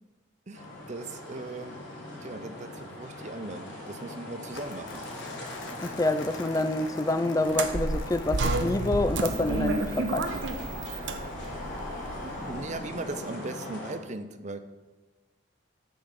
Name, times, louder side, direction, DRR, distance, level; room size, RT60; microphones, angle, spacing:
sound 1, 0.5-13.9, left 1 dB, 60° left, 3.6 m, -40 dB
voice 1, 0.5-5.0 12.2-14.6, right 2 dB, 35° right, 10 dB, 0.6 m, -39 dB
Crumpling crinkling, 4.5-9.4, left 3 dB, 75° left, 1.2 m, -46 dB
voice 2, 5.8-10.3, left 2 dB, 15° left, 11 dB, 0.4 m, -27 dB
sound 2, 7.5-12.7, right 2 dB, 65° right, 0.8 m, -31 dB
8.6 x 5.9 x 6.5 m, 1.2 s
head